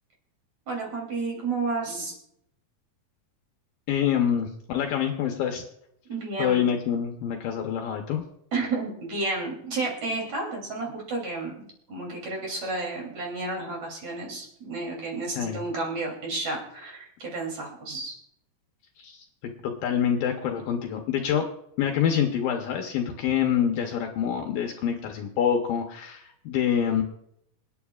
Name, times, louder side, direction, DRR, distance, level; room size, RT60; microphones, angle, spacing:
voice 1, 0.7-2.2 6.1-6.7 8.5-18.2, right 3 dB, 45° right, -1 dB, 4.0 m, -31 dB
voice 2, 3.9-5.6 6.4-8.2 15.4-15.6 19.0-21.5 21.8-27.0, left 8 dB, 70° left, 3 dB, 2.3 m, -26 dB
27.0 x 9.5 x 2.4 m, 0.75 s
omnidirectional pair, 4.7 m